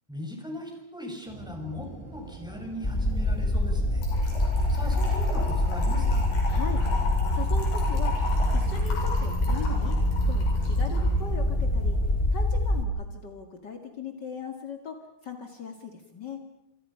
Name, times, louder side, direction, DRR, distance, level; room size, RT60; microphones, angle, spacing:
voice 1, 0.1-4.1 4.7-6.2, left 1 dB, ahead, 2 dB, 6.1 m, -39 dB
sound 1, 1.3-12.3, equal, 80° right, 7.4 m, -42 dB
sound 2, 2.8-12.8, left 1 dB, 30° left, 0.8 m, -25 dB
Trickle dribble / Fill (with liquid), 4.0-11.1, left 3 dB, 90° left, 10.0 m, -37 dB
voice 2, 6.4-6.8 7.3-8.2 8.5-10.0 10.3-12.0 12.3-16.4, left 5 dB, 60° left, 4 dB, 1.1 m, -39 dB
29.5 x 27.0 x 5.7 m, 0.85 s
omnidirectional pair, 5.1 m